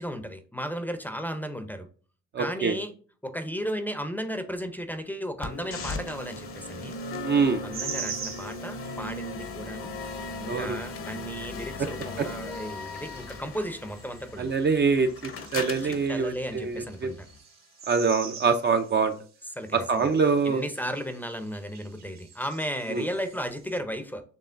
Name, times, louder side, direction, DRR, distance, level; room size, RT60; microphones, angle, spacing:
voice 1, 0.0-1.9 2.4-2.9 3.2-7.0 7.6-9.9 10.4-14.5 15.8-17.3 19.6-20.1 20.4-24.2, equal, 5° left, 8 dB, 0.6 m, -34 dB
voice 2, 2.3-2.8 7.2-7.6 10.4-10.8 12.2-12.3 14.4-17.1 17.9-19.1 19.7-20.6 22.9-23.1, right 5 dB, 35° right, 6 dB, 0.5 m, -25 dB
sound 1, 5.4-17.4, left 3 dB, 45° left, 0.8 m, -38 dB
sound 2, 7.7-9.5 10.1-10.6 11.1-11.2 11.5-14.6 14.9-23.8, right 7 dB, 65° right, 1.2 m, -44 dB
6.7 x 3.1 x 2.5 m, 0.41 s
cardioid pair, 90°, 30 cm